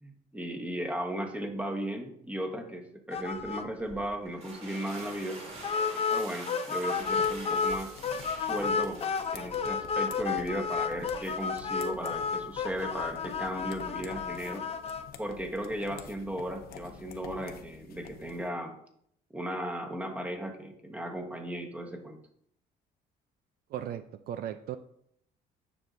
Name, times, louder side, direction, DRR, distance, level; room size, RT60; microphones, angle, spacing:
voice 1, 0.0-5.4 6.1-8.0 8.4-9.0 9.3-14.6 15.2-18.7 19.3-22.2, right 1 dB, 10° right, 4 dB, 1.2 m, -36 dB
sound 1, 3.1-3.6 3.9-4.0 4.4-4.5 5.6-7.8 8.0-15.0, left 6 dB, 35° left, 0.6 m, -31 dB
sound 2, 4.2-9.8, right 2 dB, 40° right, 2.2 m, -45 dB
sound 3, 6.9-18.5, left 7 dB, 65° left, 0.9 m, -49 dB
voice 2, 23.7-24.8, right 10 dB, 65° right, 10 dB, 0.4 m, -37 dB
9.7 x 6.0 x 2.6 m, 0.70 s
cardioid pair, 110°, 17 cm